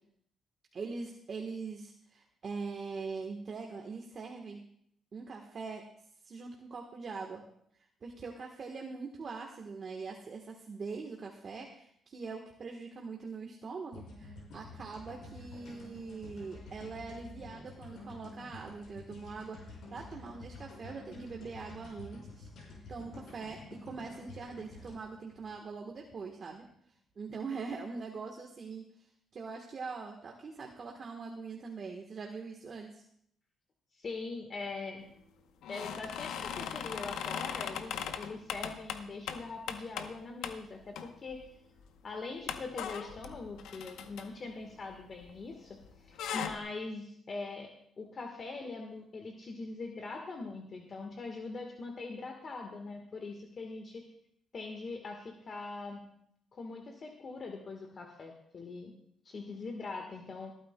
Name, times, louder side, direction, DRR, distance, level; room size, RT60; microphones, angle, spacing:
voice 1, 0.7-4.6 5.1-5.8 6.2-7.4 7.8-22.5 22.9-26.6 27.2-29.1 29.3-33.0, right 4 dB, 45° right, 1 dB, 1.2 m, -42 dB
sound 1, 13.9-26.1, left 2 dB, 70° left, 5.2 m, -50 dB
voice 2, 33.9-35.1 35.7-41.4 42.0-45.8 46.0-47.7 48.0-54.0 54.5-56.0 56.5-58.9 59.2-60.5, left 3 dB, 45° left, 3 dB, 1.3 m, -42 dB
sound 2, 35.6-40.2 40.4-40.6 41.0-41.4 41.8-41.9 42.5-45.5 45.8-46.6, left 8 dB, 85° left, 0.8 m, -39 dB
27.5 x 9.3 x 2.2 m, 0.69 s
cardioid pair, 90°, 0 cm